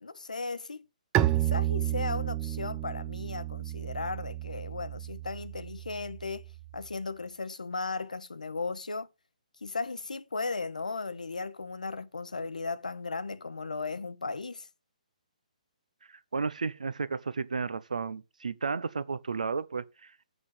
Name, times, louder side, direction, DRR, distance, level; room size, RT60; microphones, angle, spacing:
voice 1, 0.0-0.8 1.3-6.4 6.7-9.1 9.6-14.7, left 4 dB, 75° left, 0.9 m, -36 dB
Bowed string instrument, 1.1-6.7, right 14 dB, 20° right, 0.6 m, -32 dB
voice 2, 16.3-20.1, right 5 dB, 70° right, 0.7 m, -33 dB
8.1 x 5.6 x 5.3 m
figure-of-eight pair, 130°, 4 cm